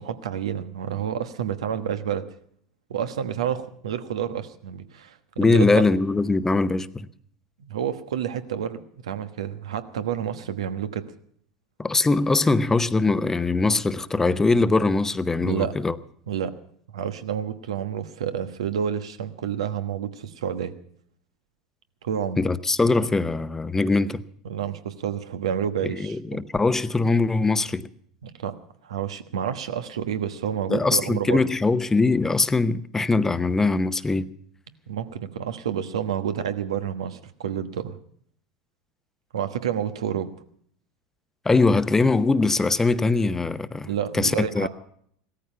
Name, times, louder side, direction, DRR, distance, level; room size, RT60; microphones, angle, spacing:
voice 1, 0.0-2.3 2.9-5.8 7.7-11.0 15.4-15.8 16.3-16.6 16.9-20.7 22.0-22.4 24.4-26.4 28.2-28.6 28.8-31.5 34.9-38.0 39.3-40.3 43.8-44.7, right 9 dB, 80° right, 1.2 m, -29 dB
voice 2, 5.4-7.1 11.8-16.0 22.4-24.2 26.0-27.9 30.7-34.3 41.4-43.9 44.1-44.7, left 3 dB, 15° left, 0.8 m, -21 dB
17.0 x 14.0 x 5.5 m
hypercardioid pair, 85°, 3 cm